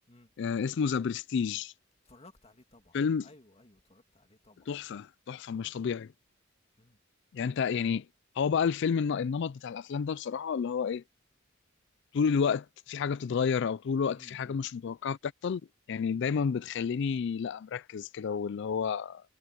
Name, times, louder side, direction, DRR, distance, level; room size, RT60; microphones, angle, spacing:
voice 1, 0.4-1.7 2.9-3.3 4.7-6.1 7.3-8.1 8.4-11.0 12.1-15.6 15.9-19.2, left 6 dB, 60° left, 0.4 m, -30 dB
voice 2, 2.0-3.0 3.2-4.7 6.8-7.0 14.1-14.7, left 2 dB, 30° left, 2.7 m, -57 dB
head